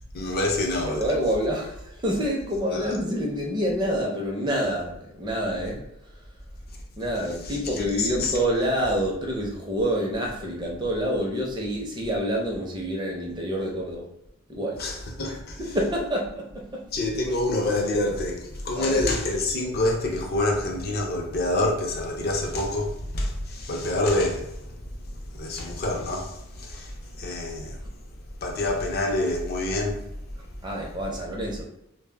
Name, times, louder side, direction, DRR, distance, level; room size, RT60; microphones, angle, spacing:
voice 1, 0.1-1.0 2.7-2.9 7.4-7.6 8.0-8.3 14.8-15.6 16.9-24.6 25.0-27.8 28.4-30.0, left 2 dB, 45° left, 0.4 m, -27 dB
voice 2, 0.9-5.8 7.0-14.1 14.5-14.8 15.3-16.8 17.3-17.4 18.7-19.0 30.6-31.7, equal, 20° right, 0.5 m, -27 dB
2.0 x 2.0 x 3.3 m
head